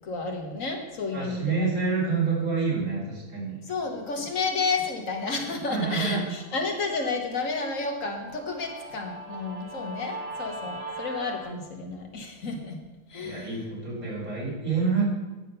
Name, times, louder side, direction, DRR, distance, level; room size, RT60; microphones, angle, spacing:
voice 1, 0.0-1.7 3.6-12.8 13.1-13.5, left 4 dB, 60° left, 3 dB, 1.7 m, -31 dB
voice 2, 1.1-3.6 5.7-6.2 13.2-15.1, right 5 dB, 65° right, -6 dB, 3.7 m, -27 dB
Guitar, 5.9-11.4, right 1 dB, 90° right, 3.9 m, -41 dB
9.9 x 7.2 x 5.5 m, 1.2 s
omnidirectional pair, 1.6 m